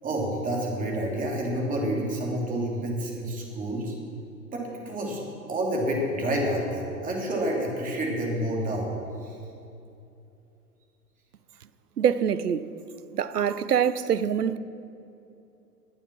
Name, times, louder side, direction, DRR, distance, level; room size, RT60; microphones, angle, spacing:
voice 1, 0.0-3.9 4.5-5.2 5.5-8.9 9.2-9.3, right 1 dB, 15° right, 3.0 m, -29 dB
voice 2, 12.0-12.7 13.1-14.6, right 8 dB, 75° right, 0.8 m, -24 dB
21.0 x 7.1 x 6.0 m
figure-of-eight pair, 105°, 47 cm